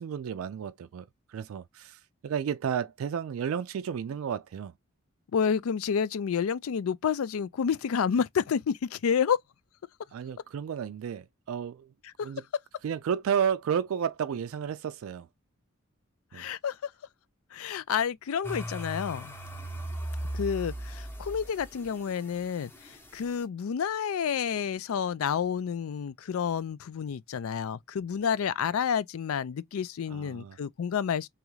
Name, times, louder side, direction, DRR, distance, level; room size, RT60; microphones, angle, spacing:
voice 1, 0.0-4.7 10.1-11.9 12.2-12.4 12.8-15.3 16.3-16.5 30.1-30.6, right 8 dB, 75° right, 0.3 m, -32 dB
voice 2, 5.3-9.4 12.2-12.3 16.3-16.9 17.5-19.3 20.3-31.3, left 7 dB, 80° left, 0.4 m, -29 dB
sound 1, 18.4-23.4, right 1 dB, 10° left, 0.8 m, -38 dB
3.5 x 3.0 x 3.1 m
head